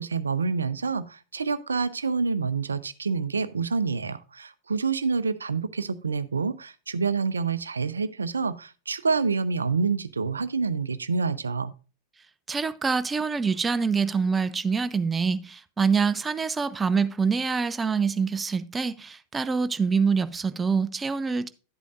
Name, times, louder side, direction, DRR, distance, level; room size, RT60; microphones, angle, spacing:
voice 1, 0.0-11.7, right 4 dB, 80° right, 0.5 m, -27 dB
voice 2, 12.5-21.5, right 5 dB, 15° right, 0.6 m, -25 dB
11.5 x 8.3 x 2.5 m
figure-of-eight pair, 90°, 0 cm